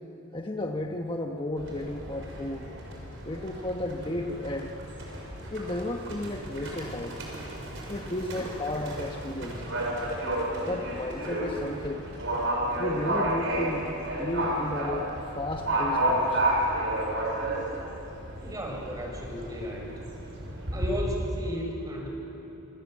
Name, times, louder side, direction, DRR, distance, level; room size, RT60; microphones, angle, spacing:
voice 1, 0.3-2.7 3.2-4.7 5.5-7.2 7.9-9.6 10.7-12.0 12.8-16.4, left 1 dB, 25° left, 2 dB, 1.3 m, -33 dB
Livestock farm animals working animals, 1.6-20.9, right 1 dB, 65° right, 6.3 m, -32 dB
voice 2, 18.4-20.0 20.7-22.1, equal, 20° right, 0 dB, 5.5 m, -34 dB
27.5 x 27.0 x 7.7 m, 3.0 s
head